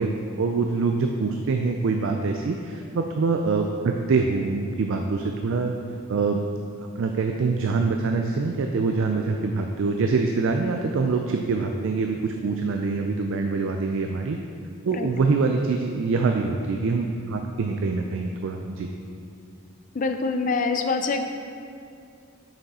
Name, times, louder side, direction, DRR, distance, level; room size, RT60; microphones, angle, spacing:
voice 1, 0.0-5.7 6.1-6.4 6.8-14.4 14.9-18.9, right 4 dB, 60° right, 3 dB, 0.3 m, -25 dB
voice 2, 19.9-21.2, left 4 dB, 35° left, 6 dB, 0.4 m, -25 dB
6.0 x 5.5 x 4.2 m, 2.4 s
head